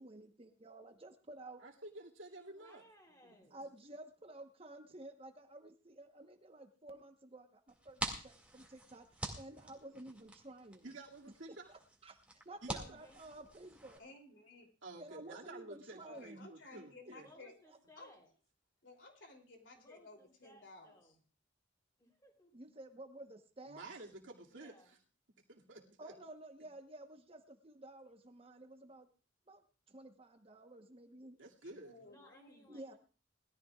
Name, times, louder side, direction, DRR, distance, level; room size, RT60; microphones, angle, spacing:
voice 1, 0.0-1.6 3.5-9.1 9.4-10.8 11.7-14.0 15.0-16.5 17.7-17.8 22.5-23.8 26.0-29.1 29.5-31.4 32.7-33.0, right 1 dB, 30° right, 6 dB, 1.1 m, -53 dB
voice 2, 1.6-2.8 3.2-3.3 10.8-11.7 12.6-13.0 14.8-17.3 23.7-25.0 25.5-26.1 31.4-31.9, right 2 dB, 85° right, 0 dB, 2.4 m, -51 dB
voice 3, 2.4-3.6 13.0-13.5 17.2-18.3 19.7-21.2 22.0-22.6 24.4-24.9 32.0-33.0, left 1 dB, 20° left, 1 dB, 3.5 m, -63 dB
sound 1, 7.7-14.0, right 1 dB, 5° right, 2.2 m, -46 dB
voice 4, 14.0-14.7 16.0-17.5 18.0-18.1 18.8-21.1 31.8-32.7, left 2 dB, 70° left, 3 dB, 3.1 m, -56 dB
21.0 x 13.5 x 2.4 m, 0.37 s
head